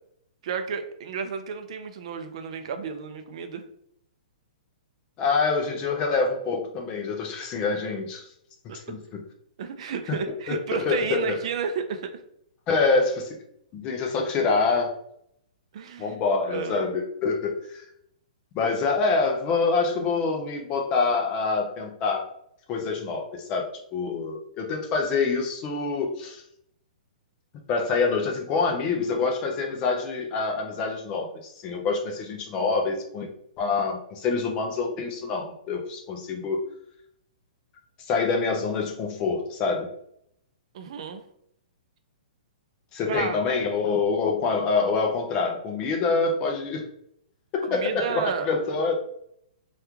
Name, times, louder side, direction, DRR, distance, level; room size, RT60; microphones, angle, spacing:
voice 1, 0.4-3.6 8.7-9.0 9.6-12.2 15.7-16.2 16.5-16.9 40.7-41.2 43.1-43.4 47.6-48.5, right 6 dB, 45° right, 7 dB, 0.4 m, -32 dB
voice 2, 5.2-8.2 8.9-9.2 10.1-10.2 10.5-11.4 12.7-13.3 13.7-14.9 16.0-17.8 18.5-22.3 22.7-26.4 27.7-33.3 33.6-36.6 38.1-39.9 42.9-46.8 47.5-48.9, left 4 dB, 20° left, 3 dB, 0.4 m, -26 dB
3.0 x 2.3 x 3.4 m, 0.71 s
hypercardioid pair, 170°, 5 cm